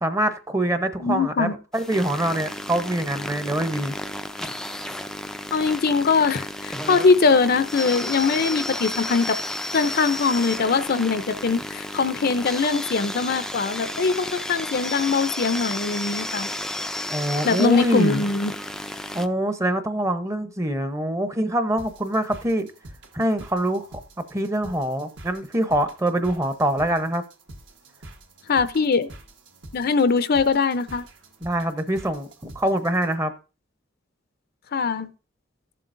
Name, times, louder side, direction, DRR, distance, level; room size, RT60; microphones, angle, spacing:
voice 1, 0.0-3.9 17.1-18.2 19.1-22.7 23.1-23.8 24.3-27.2 31.4-32.3 32.5-33.3, right 1 dB, 15° right, 0.8 m, -24 dB
voice 2, 1.0-1.5 5.5-9.4 9.7-16.5 17.4-18.5 28.5-29.1 29.7-31.1 34.7-35.1, left 4 dB, 50° left, 0.5 m, -22 dB
sound 1, 1.7-19.3, left 1 dB, 5° left, 0.4 m, -32 dB
sound 2, 21.8-33.1, right 1 dB, 65° right, 1.4 m, -46 dB
14.5 x 7.6 x 2.6 m
head